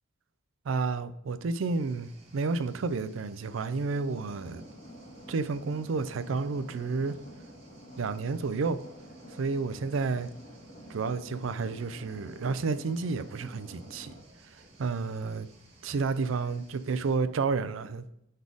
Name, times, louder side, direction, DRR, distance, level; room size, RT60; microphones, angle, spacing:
voice 1, 0.7-4.6 5.3-7.2 8.0-8.8 9.4-10.3 10.9-14.1 14.8-15.5 15.8-18.0, right 4 dB, 75° right, 0.4 m, -31 dB
sound 1, 1.7-17.2, right 2 dB, 30° right, 1.6 m, -58 dB
sound 2, 3.7-14.2, equal, 55° left, 1.6 m, -49 dB
5.4 x 4.1 x 4.7 m
head